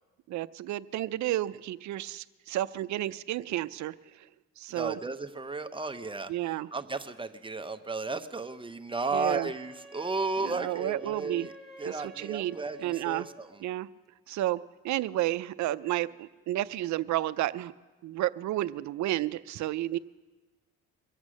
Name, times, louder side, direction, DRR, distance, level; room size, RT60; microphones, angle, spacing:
voice 1, 0.3-4.3 4.6-5.0 6.3-6.7 9.1-9.5 10.4-11.5 11.8-12.6 12.8-13.3 13.6-13.9 14.3-17.7 18.0-20.0, right 14 dB, 70° right, 15 dB, 0.5 m, -31 dB
voice 2, 4.7-11.5 11.8-13.6, right 3 dB, 15° right, 9 dB, 0.8 m, -34 dB
Wind instrument woodwind instrument, 9.5-13.6, right 1 dB, ahead, 1.5 m, -51 dB
23.0 x 8.1 x 6.3 m, 1.3 s
cardioid pair, 90°, 30 cm